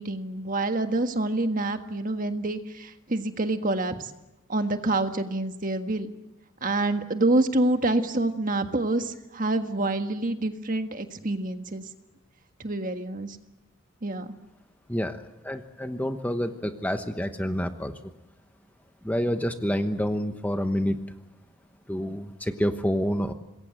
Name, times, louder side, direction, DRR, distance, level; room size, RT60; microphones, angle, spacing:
voice 1, 0.0-3.9 4.5-6.1 6.6-11.8 12.6-13.4 14.0-14.3, right 2 dB, 40° right, 7 dB, 1.6 m, -27 dB
voice 2, 14.9-17.9 19.0-21.0 21.9-23.3, equal, 5° left, 7 dB, 1.1 m, -28 dB
26.5 x 21.5 x 7.8 m, 0.95 s
head